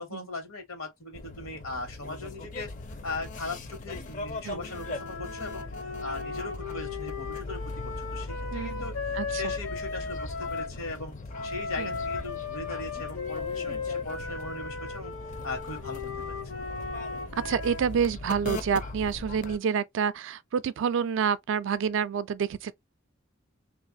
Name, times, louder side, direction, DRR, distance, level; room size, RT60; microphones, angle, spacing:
voice 1, 0.0-2.7 3.0-11.1 11.4-15.1 15.4-16.4, left 2 dB, 85° left, 1.2 m, -39 dB
sound 1, 1.1-19.6, left 2 dB, 35° left, 0.5 m, -40 dB
sound 2, 4.7-10.8 11.3-18.0, left 4 dB, 70° left, 0.8 m, -36 dB
voice 2, 8.5-8.8 9.1-9.5 11.8-12.0 17.4-22.7, right 7 dB, 60° right, 0.3 m, -28 dB
3.1 x 2.4 x 2.6 m
head